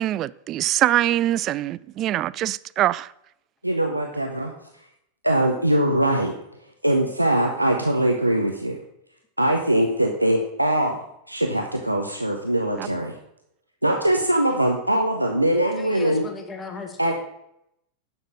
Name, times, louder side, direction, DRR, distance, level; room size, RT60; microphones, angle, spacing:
voice 1, 0.0-3.1 12.8-12.9, right 13 dB, 35° right, 0.3 m, -23 dB
voice 2, 3.6-4.5 5.2-6.3 6.8-8.8 9.4-11.0 11.3-13.1 13.8-16.2 17.0-17.1, right 1 dB, 85° right, 1.1 m, -22 dB
voice 3, 15.8-17.1, left 4 dB, 20° left, 1.7 m, -36 dB
10.0 x 7.0 x 6.3 m
figure-of-eight pair, 90°, 0 cm